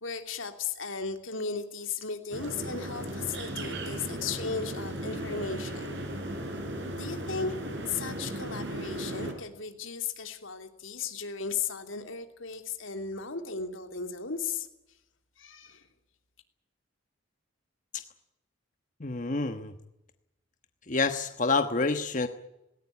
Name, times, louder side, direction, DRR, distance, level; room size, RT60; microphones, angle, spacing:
voice 1, 0.0-5.9 6.9-7.5 7.9-14.7 15.4-15.8, left 5 dB, 85° left, 6 dB, 3.1 m, -36 dB
sound 1, 2.3-9.3, right 1 dB, 60° right, 5.9 m, -36 dB
voice 2, 19.0-19.7 20.9-22.3, left 3 dB, 40° left, 8 dB, 1.2 m, -28 dB
19.5 x 18.5 x 10.0 m, 0.89 s
head